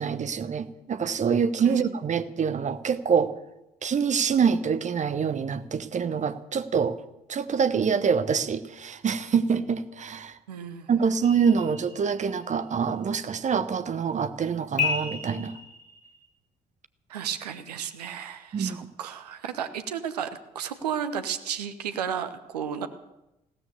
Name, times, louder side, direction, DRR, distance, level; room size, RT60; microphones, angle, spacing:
voice 1, 0.0-3.3 3.8-7.0 7.3-10.4 10.9-15.6 18.5-18.9, right 6 dB, 35° right, 13 dB, 1.0 m, -25 dB
voice 2, 10.5-10.9 17.1-22.9, right 8 dB, 75° right, 10 dB, 1.0 m, -33 dB
sound 1, 11.2-12.5 14.8-16.3, left 5 dB, 85° left, 1.5 m, -32 dB
16.0 x 13.5 x 6.8 m, 0.91 s
figure-of-eight pair, 45°, 20 cm